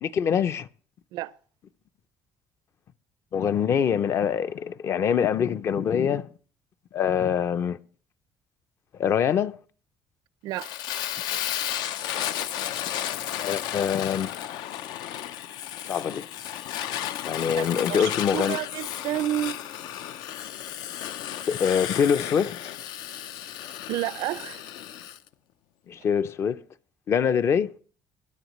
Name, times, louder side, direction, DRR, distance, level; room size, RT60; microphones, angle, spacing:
voice 1, 0.0-0.7 3.3-6.3 6.9-7.8 9.0-9.6 13.4-14.3 15.9-16.3 17.2-18.6 21.5-22.6 25.9-26.6 27.1-27.7, left 7 dB, 40° left, 0.5 m, -24 dB
Fire, 10.6-25.2, left 11 dB, 80° left, 0.6 m, -33 dB
voice 2, 17.6-19.6 23.9-24.7, right 13 dB, 80° right, 0.5 m, -30 dB
21.5 x 10.0 x 3.0 m
cardioid pair, 160°, 7 cm